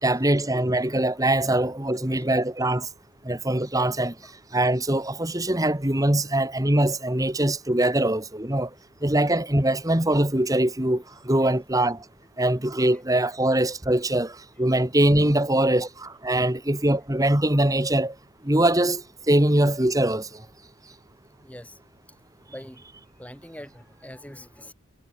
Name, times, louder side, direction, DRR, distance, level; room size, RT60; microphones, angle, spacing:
voice 1, 0.0-2.9 3.2-4.2 4.5-8.7 9.0-12.0 12.4-18.2 18.4-20.5, right 1 dB, 15° right, 1.8 m, -22 dB
voice 2, 21.4-21.8 22.5-22.8 23.2-24.7, left 1 dB, 5° left, 4.8 m, -44 dB
head